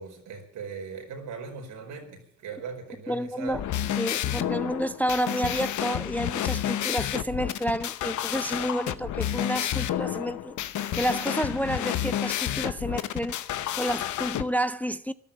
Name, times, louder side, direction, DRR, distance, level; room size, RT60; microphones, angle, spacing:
voice 1, 0.0-3.6, right 5 dB, 80° right, 4.8 m, -39 dB
voice 2, 3.1-3.6 4.0-10.6 10.9-13.4 13.7-15.1, equal, 5° left, 0.5 m, -30 dB
sound 1, 3.5-14.4, left 11 dB, 75° left, 0.9 m, -30 dB
13.5 x 12.0 x 7.3 m
cardioid pair, 90°, 30 cm